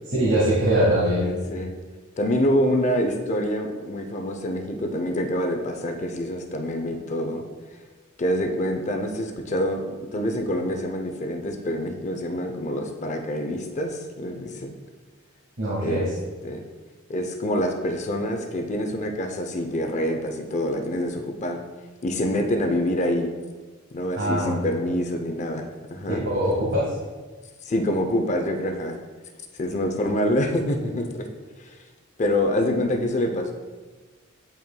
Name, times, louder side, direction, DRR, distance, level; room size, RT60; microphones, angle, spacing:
voice 1, 0.1-1.3 15.6-16.1 24.1-24.6 26.1-26.9, right 1 dB, 55° right, -6 dB, 1.5 m, -22 dB
voice 2, 1.2-1.7 2.2-7.4 8.2-9.8 10.1-14.8 15.8-16.1 16.4-16.6 17.1-21.6 22.0-23.3 23.9-26.3 27.6-29.0 29.5-31.3 31.6-31.8 32.2-33.5, left 1 dB, 35° left, 4 dB, 0.5 m, -26 dB
9.0 x 5.6 x 2.2 m, 1.3 s
head